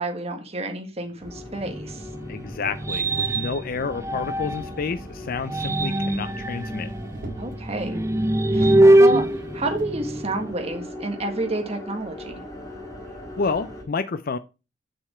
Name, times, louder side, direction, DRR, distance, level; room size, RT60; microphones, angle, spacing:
voice 1, 0.0-2.1 7.4-8.0 8.5-9.2 9.5-12.4, right 2 dB, 35° right, 1.7 m, -30 dB
sound 1, 1.2-13.8, left 1 dB, 20° left, 4.2 m, -39 dB
sound 2, 1.7-4.8 5.3-10.5, right 1 dB, 15° right, 0.4 m, -22 dB
voice 2, 2.3-6.9 13.4-14.4, left 4 dB, 50° left, 0.5 m, -29 dB
Motor vehicle (road), 4.5-7.6 8.1-8.2 8.5-9.9 10.8-10.9, right 1 dB, 50° right, 2.7 m, -43 dB
7.4 x 7.0 x 4.4 m
head